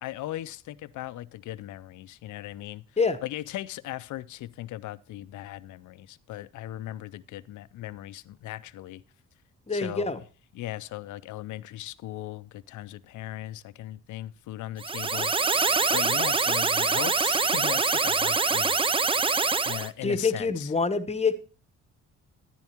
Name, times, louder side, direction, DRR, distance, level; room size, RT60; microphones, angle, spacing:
voice 1, 0.0-2.8 3.2-9.0 9.7-10.2 10.5-19.2 19.6-20.7, left 14 dB, 75° left, 0.6 m, -38 dB
voice 2, 9.7-10.2 20.0-21.4, left 4 dB, 20° left, 1.0 m, -26 dB
sound 1, 14.8-19.9, right 4 dB, 20° right, 0.5 m, -24 dB
10.5 x 10.5 x 2.9 m
cardioid pair, 90°, 30 cm